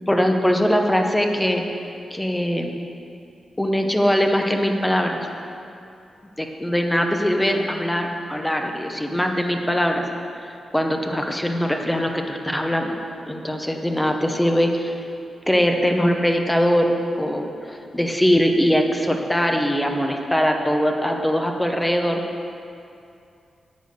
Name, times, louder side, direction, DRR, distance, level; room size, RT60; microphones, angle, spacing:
voice 1, 0.1-1.6 2.1-2.8 3.6-5.3 6.4-10.0 10.4-12.9 13.3-15.0 15.5-22.2, equal, 5° left, 3 dB, 0.8 m, -21 dB
10.5 x 8.4 x 6.7 m, 2.6 s
wide cardioid pair, 170°, 0 cm